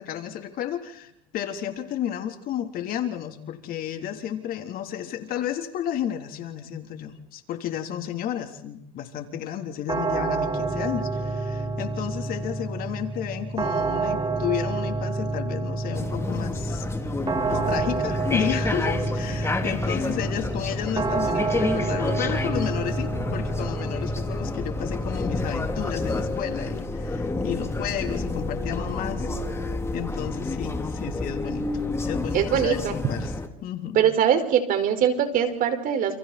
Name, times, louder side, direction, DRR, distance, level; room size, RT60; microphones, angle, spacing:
voice 1, 0.0-16.9 17.4-29.3 29.6-33.3 33.6-34.0, left 10 dB, 55° left, 5 dB, 3.5 m, -32 dB
sound 1, 9.9-28.8, right 3 dB, 25° right, 2.8 m, -29 dB
sound 2, 15.9-33.5, left 3 dB, 15° left, 3.0 m, -30 dB
voice 2, 32.3-32.9 33.9-36.2, right 9 dB, 50° right, 7 dB, 4.9 m, -22 dB
29.5 x 29.0 x 4.3 m, 0.75 s
supercardioid pair, 110°, 18 cm